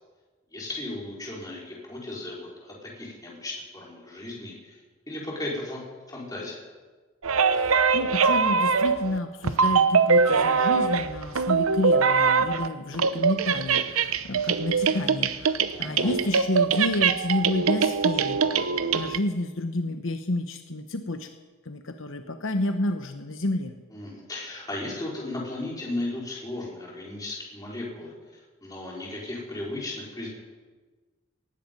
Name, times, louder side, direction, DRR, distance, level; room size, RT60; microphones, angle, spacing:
voice 1, 0.5-4.8 5.1-5.8 6.1-6.6 15.7-16.1 23.9-30.3, left 2 dB, 15° left, -4 dB, 4.6 m, -36 dB
sound 1, 7.2-9.2 9.4-12.7 12.9-19.2, right 5 dB, 90° right, 0.8 m, -23 dB
voice 2, 7.5-18.7 18.9-21.3 21.6-23.8, left 1 dB, 70° left, 7 dB, 1.0 m, -30 dB
18.5 x 14.5 x 5.4 m, 1.4 s
head